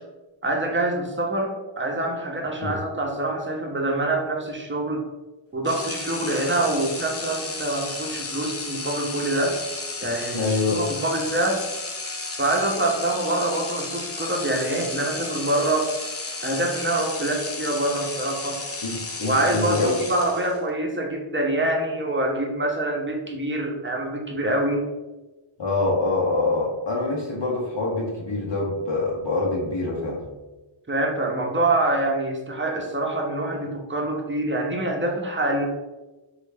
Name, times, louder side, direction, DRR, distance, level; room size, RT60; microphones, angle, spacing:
voice 1, 0.4-5.0 5.5-9.6 10.0-11.6 12.4-15.9 16.4-18.6 19.2-24.8 30.9-35.7, right 1 dB, 25° right, 1 dB, 0.7 m, -25 dB
Electric screwdriver, 5.6-20.7, left 3 dB, 30° left, 0.5 m, -33 dB
voice 2, 10.3-10.8 18.8-19.9 25.6-30.2, left 3 dB, 60° left, -3 dB, 0.8 m, -25 dB
3.3 x 2.4 x 3.3 m, 1.1 s
wide cardioid pair, 50°, 49 cm